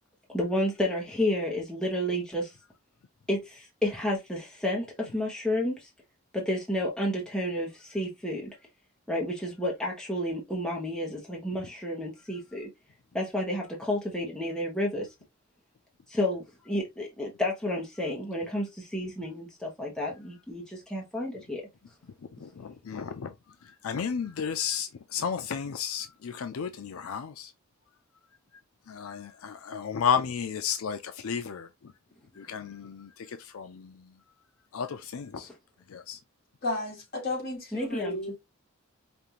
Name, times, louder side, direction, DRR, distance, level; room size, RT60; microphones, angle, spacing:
voice 1, 0.3-2.5 3.3-5.9 6.3-8.5 9.1-12.7 13.1-15.1 16.1-21.6 37.7-38.2, left 1 dB, 5° left, 0.9 m, -31 dB
voice 2, 22.4-23.3 23.6-27.5 28.9-31.9 32.4-34.1 34.7-35.5 35.9-36.2, left 7 dB, 80° left, 0.4 m, -33 dB
voice 3, 36.6-38.4, left 2 dB, 45° left, 2.2 m, -33 dB
5.1 x 2.5 x 2.9 m
head